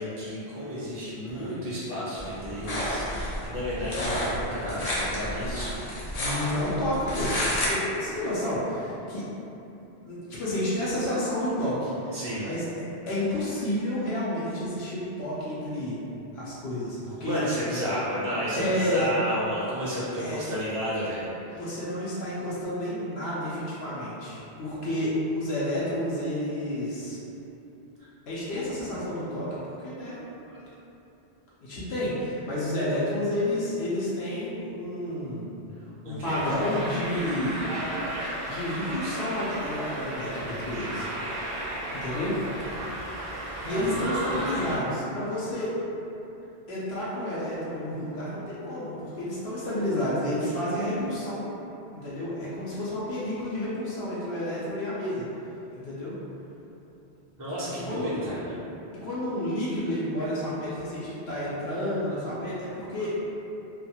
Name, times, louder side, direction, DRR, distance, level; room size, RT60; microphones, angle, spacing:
voice 1, 0.0-5.7 12.1-12.5 17.2-21.6 30.1-30.2 30.5-30.6 36.0-36.4 43.6-44.7 57.4-58.5, equal, 25° right, -10 dB, 0.4 m, -32 dB
sound 1, 2.2-7.7, left 1 dB, 50° left, 0.5 m, -31 dB
voice 2, 6.2-9.2 10.0-12.6 13.1-16.0 16.3-17.4 18.5-19.1 19.9-20.4 21.5-27.2 28.3-30.2 31.6-35.5 35.8-37.6 38.4-41.5 41.9-42.4 43.6-45.8 46.7-51.5 51.9-55.2 55.7-56.2 57.8-58.3 58.9-63.2, left 1 dB, 80° left, -9 dB, 0.8 m, -30 dB
sound 2, 36.3-44.8, right 1 dB, 65° right, 0.7 m, -34 dB
2.4 x 2.2 x 2.8 m, 2.9 s
omnidirectional pair, 1.1 m